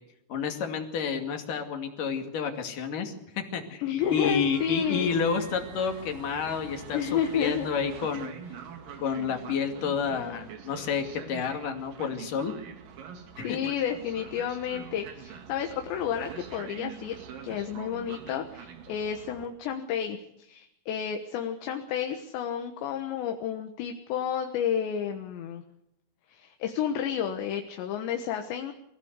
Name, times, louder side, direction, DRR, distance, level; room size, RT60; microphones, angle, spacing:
voice 1, 0.3-3.8 4.1-8.3 9.0-12.5 13.4-13.6, left 6 dB, 50° left, 5 dB, 3.6 m, -30 dB
voice 2, 3.8-5.1 6.9-7.7 13.4-17.2 17.4-25.6 26.3-28.7, left 8 dB, 75° left, 5 dB, 3.5 m, -31 dB
Train, 4.0-19.5, right 7 dB, 55° right, 3.2 m, -44 dB
24.0 x 16.0 x 8.2 m, 0.79 s
omnidirectional pair, 5.2 m